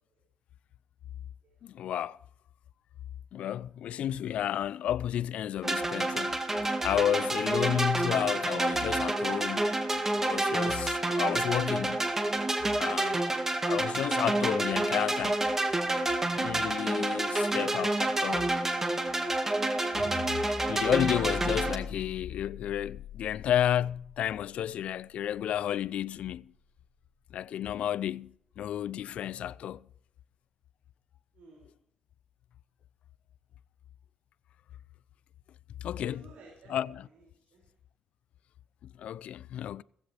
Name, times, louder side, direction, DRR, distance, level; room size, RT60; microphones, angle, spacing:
voice 1, 1.6-2.2 3.3-6.4 6.8-9.7 10.2-12.1 12.7-13.3 13.7-15.4 16.3-18.5 20.7-26.5 27.3-29.8 35.8-36.3 36.7-37.1 39.0-39.8, left 10 dB, 75° left, 0.4 m, -31 dB
sound 1, 5.6-21.8, right 2 dB, 20° right, 1.9 m, -29 dB
sound 2, 20.0-26.3, left 6 dB, 55° left, 3.7 m, -42 dB
voice 2, 31.3-31.8 35.9-37.3 37.5-37.6, right 3 dB, 75° right, 6.0 m, -56 dB
16.5 x 16.0 x 3.4 m
cardioid pair, 100°, 2 cm